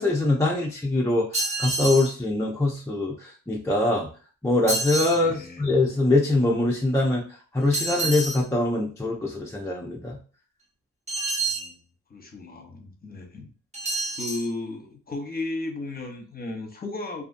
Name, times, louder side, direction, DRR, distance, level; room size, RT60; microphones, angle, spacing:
voice 1, 0.0-4.1 4.4-7.2 7.5-10.2, left 2 dB, 10° left, -3 dB, 0.5 m, -23 dB
sound 1, 1.3-2.1 4.7-5.2 7.7-8.4 11.1-11.7 13.7-14.5, right 2 dB, 20° right, 0.8 m, -28 dB
voice 2, 5.1-5.7 11.5-11.8 12.1-13.5 14.1-17.2, left 2 dB, 25° left, 2 dB, 0.9 m, -35 dB
2.6 x 2.5 x 2.5 m, 0.38 s
cardioid pair, 75°, 34 cm